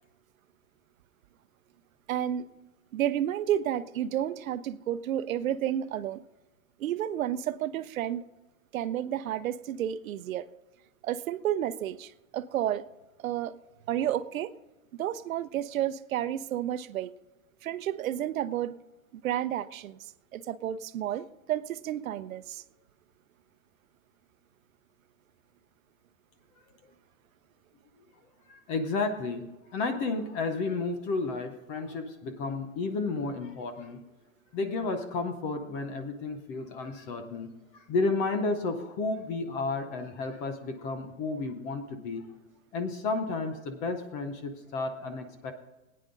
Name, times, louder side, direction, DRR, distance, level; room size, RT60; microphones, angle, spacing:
voice 1, 2.1-2.4 2.9-6.2 6.8-8.2 8.7-10.5 11.0-12.8 13.2-13.6 13.9-14.5 15.0-17.1 17.6-18.8 19.2-22.6, right 11 dB, 85° right, 0.7 m, -31 dB
voice 2, 28.5-34.0 34.5-42.2 42.7-45.5, left 3 dB, 20° left, 0.6 m, -32 dB
18.0 x 9.6 x 3.8 m
supercardioid pair, 165°, 40 cm